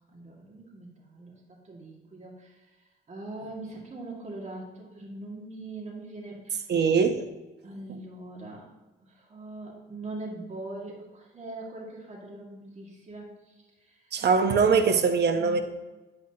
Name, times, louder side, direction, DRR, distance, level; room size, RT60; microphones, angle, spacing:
voice 1, 0.1-1.3 1.6-2.5 3.1-6.6 7.6-8.7 9.1-13.5 13.9-14.0 15.3-15.6, right 2 dB, 35° right, -3 dB, 2.1 m, -41 dB
voice 2, 6.7-7.2 7.9-8.0 14.1-15.6, right 5 dB, 55° right, 7 dB, 0.9 m, -22 dB
9.6 x 8.0 x 2.9 m, 1.2 s
cardioid pair, 90°, 20 cm